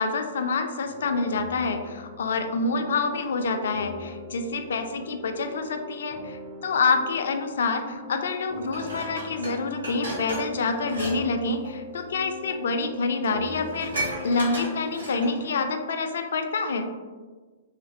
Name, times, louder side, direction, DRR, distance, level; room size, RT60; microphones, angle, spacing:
voice 1, 0.0-16.9, left 4 dB, 70° left, 6 dB, 0.3 m, -27 dB
sound 1, 0.8-14.6, left 2 dB, 40° right, 0.7 m, -41 dB
Dishes pots and pans, 8.7-11.2 11.4-11.7 12.5-12.6 12.9-13.0 13.2-15.5 15.9-16.0, right 1 dB, 90° right, 1.1 m, -35 dB
3.0 x 2.5 x 2.5 m, 1.4 s
figure-of-eight pair, 115°, 0 cm